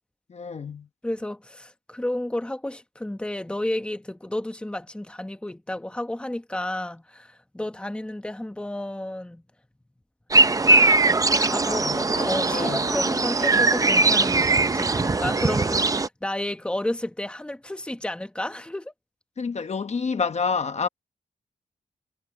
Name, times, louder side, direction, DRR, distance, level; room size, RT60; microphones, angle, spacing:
voice 1, 0.3-0.9 11.6-12.8 19.4-20.9, left 5 dB, 45° left, 1.1 m, -29 dB
voice 2, 1.0-9.4 11.4-18.9, left 1 dB, 5° left, 1.3 m, -31 dB
sound 1, 10.3-16.1, right 3 dB, 25° right, 0.6 m, -20 dB
wide cardioid pair, 115°, 15 cm